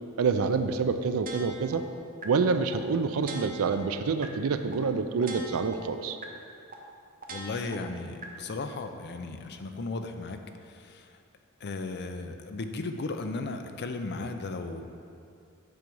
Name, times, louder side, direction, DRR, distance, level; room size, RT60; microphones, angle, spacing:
voice 1, 0.2-1.9 2.2-6.2, right 5 dB, 75° right, 9 dB, 0.4 m, -27 dB
sound 1, 1.3-1.7 2.2-2.3 2.7-2.8 3.2-3.7 4.2-4.3 4.7-4.8 5.2-5.7 6.2-6.3 6.7-6.8 7.2-7.7 8.2-8.3, right 3 dB, 40° right, 0.7 m, -40 dB
voice 2, 7.3-11.2 11.6-14.8, left 3 dB, 50° left, 7 dB, 0.5 m, -36 dB
7.7 x 4.7 x 5.4 m, 2.5 s
head